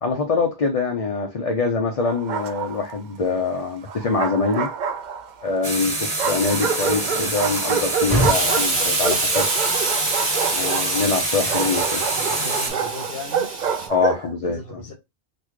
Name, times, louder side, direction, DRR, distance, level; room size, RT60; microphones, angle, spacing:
voice 1, 0.0-4.7 5.4-9.5 10.5-12.0 13.9-14.8, left 4 dB, 45° left, 0.6 m, -24 dB
Bark, 2.0-3.0 3.9-5.5 6.2-14.3, right 7 dB, 55° right, 0.6 m, -27 dB
sound 1, 5.6-12.7, right 2 dB, 30° right, 1.2 m, -26 dB
voice 2, 7.0-7.4 11.3-11.7 12.2-13.5 14.4-14.9, left 2 dB, 70° left, 1.4 m, -38 dB
Explosion, 8.1-13.9, right 2 dB, 80° right, 1.6 m, -26 dB
4.0 x 2.3 x 3.1 m
omnidirectional pair, 1.0 m